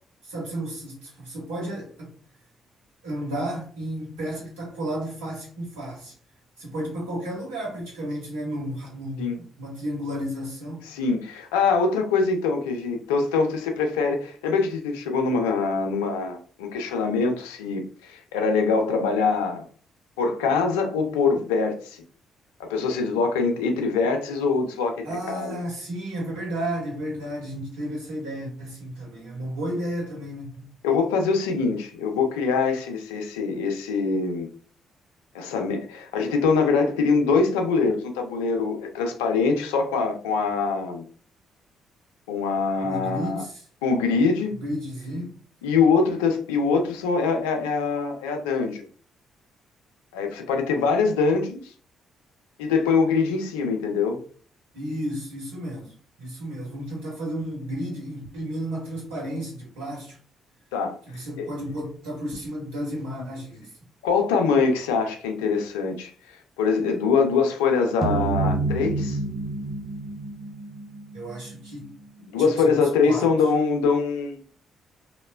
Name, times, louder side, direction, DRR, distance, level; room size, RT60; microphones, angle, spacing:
voice 1, 0.2-2.1 3.0-6.1 6.6-10.8 25.0-30.7 42.8-43.6 44.6-45.3 54.7-60.2 61.1-63.7 71.1-71.9 72.6-73.3, right 1 dB, 75° right, 1.0 m, -33 dB
voice 2, 10.9-19.6 20.2-22.0 22.6-25.6 30.8-34.5 35.3-41.0 42.3-43.4 43.8-44.6 45.6-48.8 50.1-51.6 52.6-54.2 60.7-60.9 64.0-69.2 72.2-74.4, left 4 dB, 75° left, 0.4 m, -23 dB
sound 1, 68.0-72.4, right 3 dB, 45° right, 0.6 m, -29 dB
3.0 x 2.0 x 2.2 m
figure-of-eight pair, 45°, 0 cm